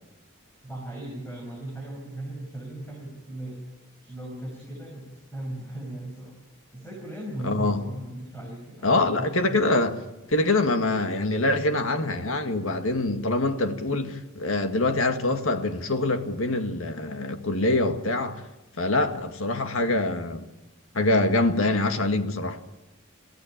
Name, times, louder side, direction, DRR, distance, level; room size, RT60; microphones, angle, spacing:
voice 1, 0.6-3.7 4.0-6.3 6.7-9.6, right 1 dB, 10° left, 5.6 m, -37 dB
voice 2, 7.4-7.8 8.8-9.9 10.3-18.4 18.8-20.4 20.9-22.6, left 2 dB, 75° left, 2.0 m, -24 dB
24.5 x 15.5 x 8.8 m
head